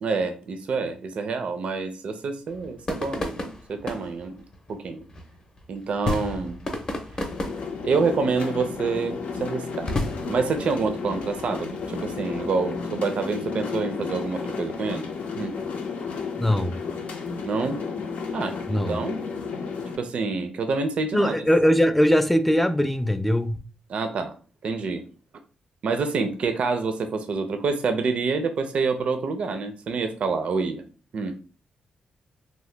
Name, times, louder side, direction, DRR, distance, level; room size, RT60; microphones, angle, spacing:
voice 1, 0.0-4.4 4.7-5.0 5.7-6.6 7.8-9.9 10.3-15.1 15.3-15.6 17.4-17.8 18.3-19.2 20.0-21.3 23.9-24.3 24.6-25.0 25.8-30.9 31.1-31.4, right 4 dB, 60° right, 0.4 m, -27 dB
sound 1, 2.5-12.8, left 2 dB, 35° left, 0.6 m, -35 dB
sound 2, 7.3-20.0, left 5 dB, 75° left, 0.5 m, -33 dB
voice 2, 16.4-16.8 18.7-19.0 21.1-23.6, equal, 5° left, 0.3 m, -21 dB
2.8 x 2.1 x 3.2 m
cardioid pair, 100°, 2 cm